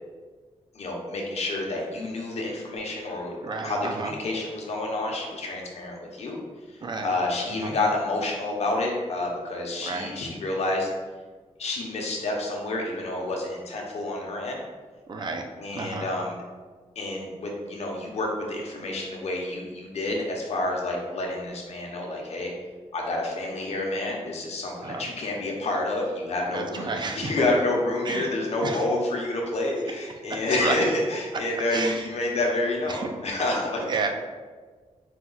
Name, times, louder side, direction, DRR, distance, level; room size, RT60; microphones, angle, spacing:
voice 1, 0.7-3.3 3.6-6.4 6.7-10.9 11.6-14.6 15.6-16.4 17.0-22.5 22.9-33.8, left 2 dB, 65° left, -1 dB, 0.8 m, -29 dB
voice 2, 3.4-4.1 6.8-7.1 7.6-7.7 9.8-10.1 15.1-15.4 15.7-16.1 24.8-25.1 26.5-27.5 28.0-28.3 28.6-28.8 30.3-30.8 31.7-32.0 32.9-33.1 33.8-34.1, right 4 dB, 40° right, 4 dB, 0.4 m, -31 dB
4.3 x 2.3 x 3.8 m, 1.4 s
wide cardioid pair, 155°, 12 cm